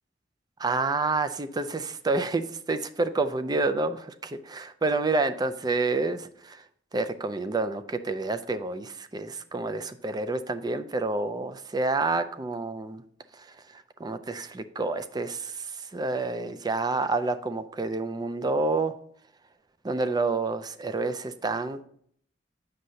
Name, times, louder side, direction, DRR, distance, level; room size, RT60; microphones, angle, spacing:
voice 1, 0.6-6.6 6.9-13.0 13.3-18.9 19.8-21.9, right 3 dB, 20° right, 10 dB, 0.4 m, -29 dB
7.8 x 6.4 x 2.8 m, 0.62 s
head